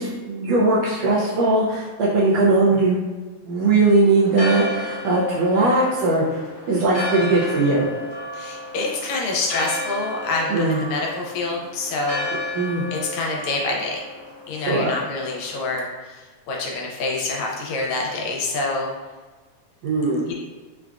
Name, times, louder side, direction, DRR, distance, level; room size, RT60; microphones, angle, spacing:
voice 1, 0.0-3.0 3.4-6.2 6.7-7.9 10.5-10.8 12.5-12.9 14.6-14.9 19.8-20.3, right 2 dB, 75° right, -6 dB, 1.5 m, -19 dB
Church bell, 4.2-15.7, left 2 dB, 55° left, 1.1 m, -33 dB
voice 2, 8.3-12.6 12.9-14.0 14.5-18.9 20.3-20.4, left 3 dB, 80° left, -2 dB, 1.8 m, -27 dB
4.9 x 2.4 x 2.3 m, 1.3 s
omnidirectional pair, 3.3 m